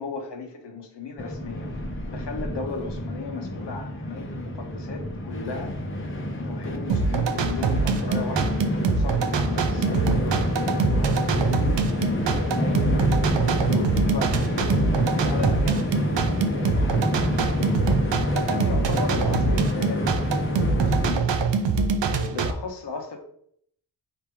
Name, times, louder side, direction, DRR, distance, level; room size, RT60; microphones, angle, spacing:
voice 1, 0.0-1.7 2.0-5.7 6.5-8.6 9.0-11.8 12.5-17.0 18.3-20.1 20.5-21.4 22.0-23.2, left 4 dB, 65° left, 2 dB, 1.1 m, -35 dB
Train, 1.2-21.1, left 1 dB, 25° left, 0.9 m, -28 dB
sound 1, 6.9-22.5, right 4 dB, 75° right, 0.6 m, -24 dB
3.4 x 2.9 x 4.7 m, 0.66 s
cardioid pair, 55°, 44 cm